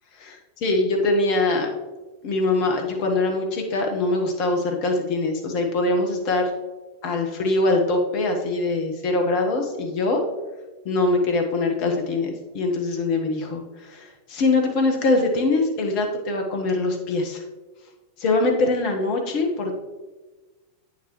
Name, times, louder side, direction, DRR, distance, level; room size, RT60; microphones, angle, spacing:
voice 1, 0.2-1.7 2.2-6.5 7.0-10.2 10.8-17.4 18.2-19.8, left 2 dB, 45° left, 3 dB, 1.3 m, -23 dB
8.7 x 7.3 x 3.1 m, 1.2 s
figure-of-eight pair, 90°, 0 cm